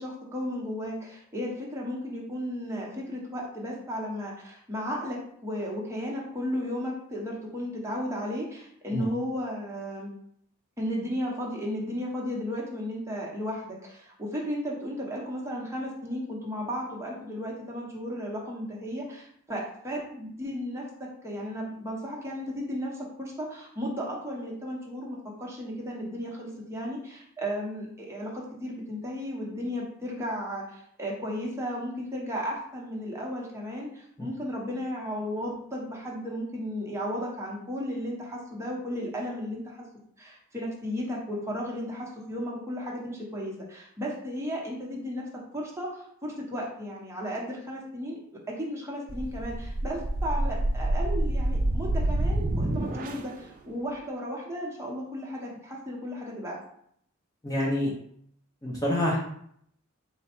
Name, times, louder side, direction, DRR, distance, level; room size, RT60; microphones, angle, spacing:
voice 1, 0.0-10.1 10.8-39.9 40.2-45.2 45.5-48.2 48.5-56.6, equal, 15° right, -3 dB, 0.8 m, -34 dB
sound 1, 49.1-53.4, right 1 dB, 40° right, 0.4 m, -28 dB
voice 2, 57.4-57.9 58.6-59.2, left 1 dB, 15° left, -3 dB, 0.6 m, -26 dB
4.1 x 2.2 x 4.4 m, 0.67 s
head